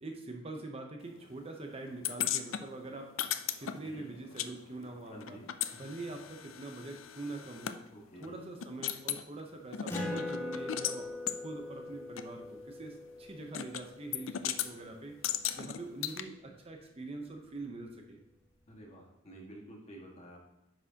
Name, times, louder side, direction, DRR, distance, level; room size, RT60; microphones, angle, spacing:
voice 1, 0.0-3.2 3.6-5.4 5.7-7.8 8.2-11.1 11.4-15.2 15.5-18.2, right 2 dB, 30° right, 3 dB, 0.7 m, -44 dB
sound 1, 2.0-4.5 4.8-7.8 8.2-8.3 8.6-9.2 9.7-11.0 11.3-11.4 12.2-12.3 13.5-13.8 14.1-14.7 15.2-16.2, left 11 dB, 85° left, 0.5 m, -36 dB
voice 2, 5.0-5.5 7.9-8.4 18.7-20.4, right 1 dB, 35° left, -2 dB, 1.7 m, -50 dB
Acoustic guitar, 9.9-14.9, left 2 dB, 15° left, 1.8 m, -41 dB
9.5 x 6.1 x 2.8 m, 0.91 s
head